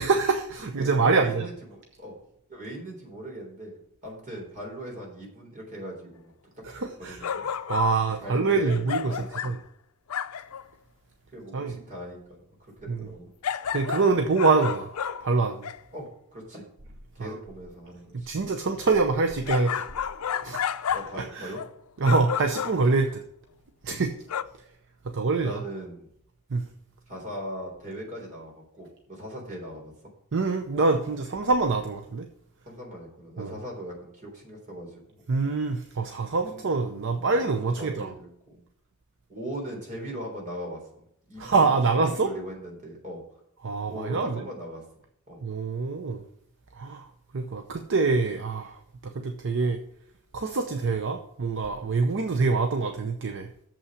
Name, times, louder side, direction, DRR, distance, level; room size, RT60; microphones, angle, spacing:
voice 1, 0.0-1.5 6.6-7.2 7.7-9.2 9.4-9.6 11.5-11.8 12.9-13.1 13.7-14.9 15.2-15.7 17.2-17.3 18.1-19.8 20.4-20.6 21.2-21.5 22.0-23.2 23.8-24.1 25.1-25.6 26.5-26.6 30.3-32.3 33.4-33.5 35.3-38.1 41.4-42.3 43.6-44.5 45.4-46.2 46.7-49.8 50.3-53.5, right 4 dB, 60° right, 6 dB, 0.7 m, -25 dB
voice 2, 0.8-2.2 2.5-6.3 7.0-7.5 8.2-9.5 11.3-13.3 15.9-16.6 17.1-18.3 20.9-21.6 25.4-26.1 27.1-29.9 32.7-35.2 36.5-36.6 37.2-37.4 37.8-38.6 39.3-40.8 41.3-43.2 43.9-44.8 45.3-45.4, equal, 35° right, -1 dB, 3.9 m, -39 dB
sound 1, 7.2-8.0 8.7-9.6 10.1-10.6 13.4-15.8 19.5-21.2 21.5-21.8 22.0-22.9 24.3-24.4, left 8 dB, 75° left, 0.5 m, -31 dB
7.1 x 5.7 x 7.1 m, 0.70 s
head